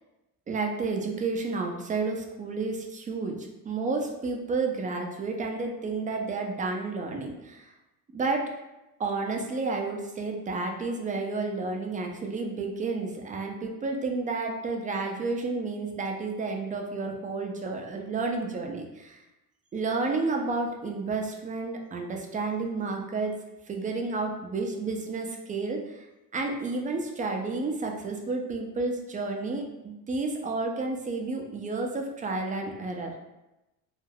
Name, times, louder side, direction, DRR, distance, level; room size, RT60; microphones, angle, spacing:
voice 1, 0.5-7.7 8.1-8.5 9.0-19.2 19.7-23.3 23.7-26.1 26.3-33.2, right 3 dB, 20° right, 2 dB, 0.3 m, -31 dB
2.3 x 2.2 x 3.2 m, 0.97 s
cardioid pair, 105°, 38 cm